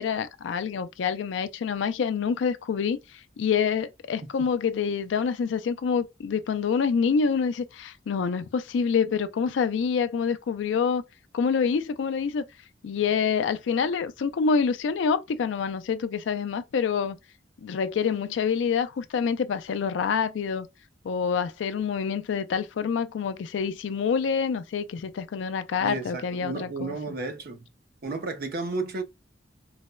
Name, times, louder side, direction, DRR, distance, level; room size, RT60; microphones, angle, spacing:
voice 1, 0.0-11.0 11.3-12.4 12.8-17.2 17.6-20.7 21.0-27.0, left 6 dB, 80° left, 0.3 m, -27 dB
voice 2, 25.8-27.6 28.0-29.0, right 3 dB, 55° right, 0.5 m, -32 dB
4.0 x 2.0 x 2.2 m
head